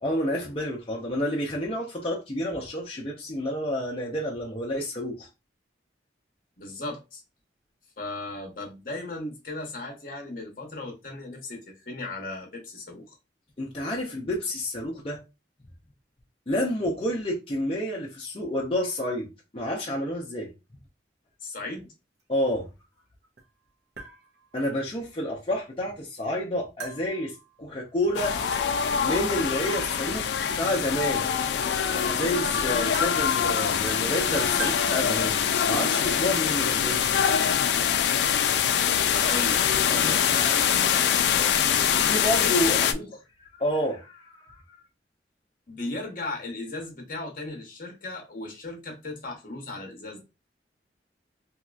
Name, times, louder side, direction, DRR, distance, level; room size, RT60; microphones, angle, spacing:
voice 1, 0.0-5.3 13.6-15.2 16.5-20.5 22.3-22.7 24.5-28.5 28.9-31.3 31.9-35.4 35.7-37.2 41.9-42.9 43.6-44.6, left 1 dB, 30° left, 0.6 m, -29 dB
voice 2, 6.6-7.2 8.0-13.1 21.4-21.9 39.1-41.7 42.0-42.5 42.8-43.1 45.7-50.2, left 2 dB, 50° left, 1.0 m, -36 dB
sound 1, 23.4-23.5 24.0-24.7 26.8-27.7 28.5-29.1 30.5-30.6 31.7-31.8 32.0-34.9, right 3 dB, 70° right, 0.8 m, -41 dB
sound 2, 28.1-42.9, left 8 dB, 70° left, 0.3 m, -24 dB
3.0 x 2.9 x 2.4 m
head